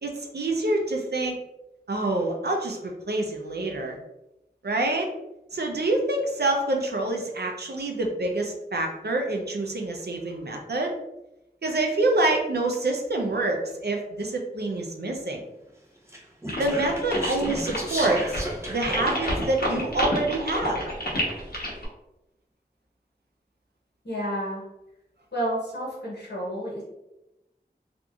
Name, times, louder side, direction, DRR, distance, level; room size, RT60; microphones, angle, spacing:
voice 1, 0.0-1.4 1.9-4.0 4.6-5.1 5.5-10.9 11.6-15.4 16.6-18.4 18.7-20.8, right 2 dB, 75° right, 1 dB, 0.5 m, -26 dB
Speech, 16.1-19.5, right 1 dB, 15° right, 0.7 m, -33 dB
sound 1, 16.5-21.9, equal, 65° left, 0.9 m, -30 dB
voice 2, 24.0-24.6 25.3-26.8, right 1 dB, 85° left, -5 dB, 1.1 m, -30 dB
2.8 x 2.5 x 2.3 m, 0.92 s
wide cardioid pair, 45°, 17 cm